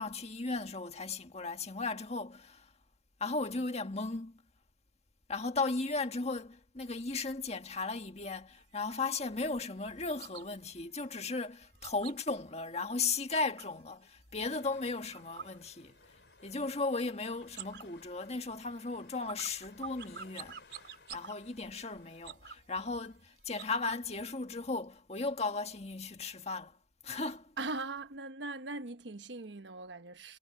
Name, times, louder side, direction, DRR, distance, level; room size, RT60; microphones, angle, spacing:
voice 1, 0.0-2.7 3.2-4.4 5.3-16.0 16.4-20.6 21.1-26.8 27.0-27.5, left 3 dB, 40° left, 1.8 m, -36 dB
sound 1, 8.5-13.8 14.2-16.3 16.6-17.1 17.4-24.3, right 6 dB, 70° right, 4.0 m, -50 dB
sound 2, 14.4-22.2, left 4 dB, 75° left, 5.2 m, -61 dB
voice 2, 27.6-30.4, right 3 dB, 90° right, 1.2 m, -40 dB
head